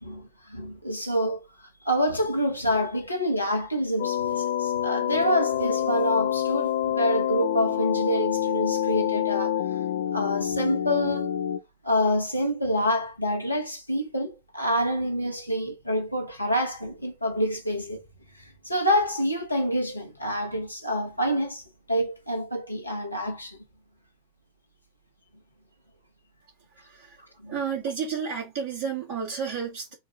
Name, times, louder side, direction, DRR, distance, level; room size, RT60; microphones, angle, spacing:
voice 1, 0.0-1.5 1.8-9.6 10.1-11.3 11.8-18.0 18.3-21.6 21.9-23.6 27.4-27.6, equal, 85° left, 1.0 m, -27 dB
sound 1, 4.0-11.6, left 10 dB, 55° left, 0.5 m, -27 dB
voice 2, 27.5-29.9, right 6 dB, 45° right, 1.7 m, -31 dB
3.9 x 2.3 x 4.1 m
figure-of-eight pair, 90°, 0 cm